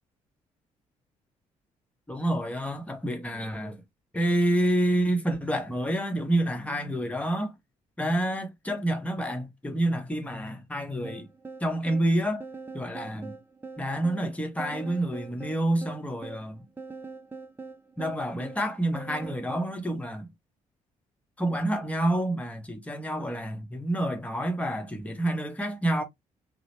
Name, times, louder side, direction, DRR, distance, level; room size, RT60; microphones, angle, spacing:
voice 1, 2.1-3.8 4.1-7.5 8.0-11.3 11.6-12.4 12.7-13.4 13.8-16.7 18.0-20.3 21.4-26.0, right 1 dB, 10° left, 0.9 m, -28 dB
sound 1, 11.0-19.7, right 4 dB, 10° right, 0.4 m, -43 dB
2.9 x 2.0 x 2.9 m
figure-of-eight pair, 45°, 17 cm